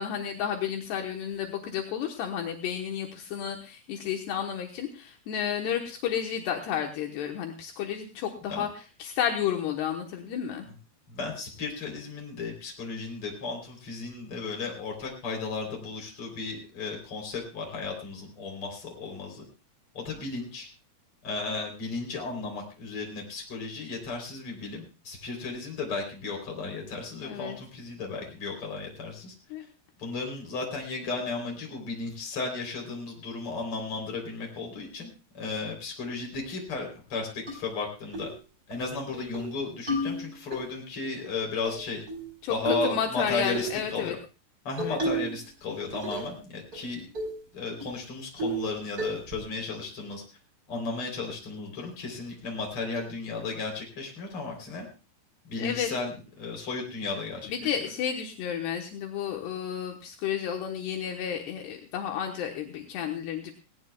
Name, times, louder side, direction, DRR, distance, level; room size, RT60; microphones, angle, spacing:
voice 1, 0.0-8.7 9.0-10.7 27.2-27.6 29.5-29.7 42.4-42.6 42.8-44.1 44.8-45.0 55.6-55.9 57.5-63.5, left 8 dB, 75° left, 3 dB, 3.2 m, -31 dB
voice 2, 11.1-19.4 19.9-20.7 21.2-29.3 30.0-38.3 38.7-42.0 42.5-44.2 44.6-47.1 47.5-50.2 50.7-54.9 55.5-57.8, left 4 dB, 30° left, 1 dB, 4.2 m, -34 dB
sound 1, 37.5-37.6 38.1-38.3 38.7-38.8 39.1-39.5 39.9-40.6 41.6-42.3 42.6-43.0 43.5-43.7 44.8-45.4 45.7-46.4 46.7-46.8 47.1-47.4 47.8-47.9 48.4-48.7 49.0-49.4, right 1 dB, 20° right, 4.3 m, -32 dB
19.5 x 18.0 x 2.4 m, 0.33 s
omnidirectional pair, 5.0 m